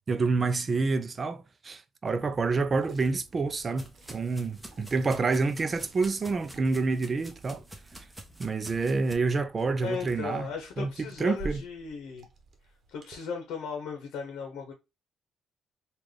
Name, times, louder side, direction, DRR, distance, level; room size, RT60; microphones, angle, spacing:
voice 1, 0.1-7.6 8.4-10.5 10.8-10.9 11.2-11.6, right 4 dB, 35° right, 0.5 m, -28 dB
Liquid, 2.1-13.2, right 2 dB, 50° right, 1.0 m, -49 dB
sound 1, 2.8-9.1, right 1 dB, 5° right, 1.0 m, -49 dB
voice 2, 9.8-12.2 12.9-14.7, left 6 dB, 85° left, 0.8 m, -37 dB
3.8 x 2.5 x 3.1 m
cardioid pair, 90°, 0 cm